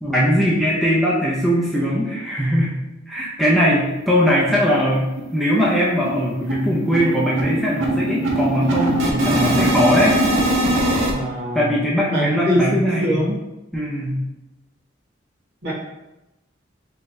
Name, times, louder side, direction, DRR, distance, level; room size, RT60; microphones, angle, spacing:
voice 1, 0.0-2.7 3.1-10.3 11.5-13.2 13.7-14.2, equal, ahead, -7 dB, 0.5 m, -20 dB
sound 1, 3.9-4.0 4.3-4.4 4.7-4.9 5.2-11.1, right 1 dB, 85° right, 0.7 m, -21 dB
voice 2, 11.1-11.7 12.1-13.4 15.6-15.7, equal, 55° right, -6 dB, 1.2 m, -22 dB
3.7 x 3.3 x 2.6 m, 0.96 s
head